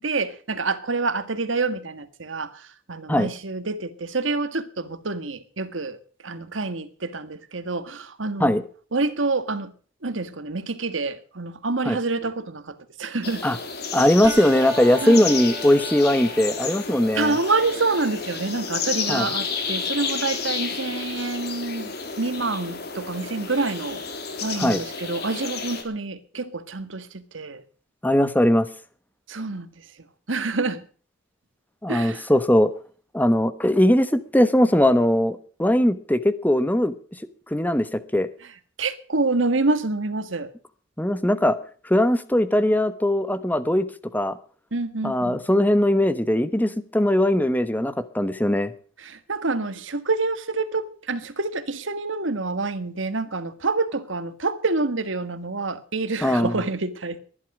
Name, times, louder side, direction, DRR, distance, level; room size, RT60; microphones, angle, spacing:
voice 1, 0.0-8.6 8.9-9.7 10.0-13.4 14.0-14.1 15.0-15.3 17.1-24.0 24.4-27.6 29.3-29.9 30.3-30.8 31.9-32.3 38.8-40.5 44.7-45.4 49.0-57.2, right 3 dB, 90° right, 1.7 m, -27 dB
sound 1, 13.2-25.8, left 5 dB, 55° left, 3.3 m, -31 dB
voice 2, 13.9-17.4 19.1-19.3 24.6-24.8 28.0-28.7 31.8-32.7 33.1-36.9 37.5-38.3 41.0-41.6 41.8-43.9 44.1-44.4 45.0-48.7 56.2-56.6, left 1 dB, 10° left, 1.1 m, -20 dB
sound 2, 14.2-23.2, right 1 dB, 20° right, 5.5 m, -40 dB
20.0 x 11.0 x 4.9 m
head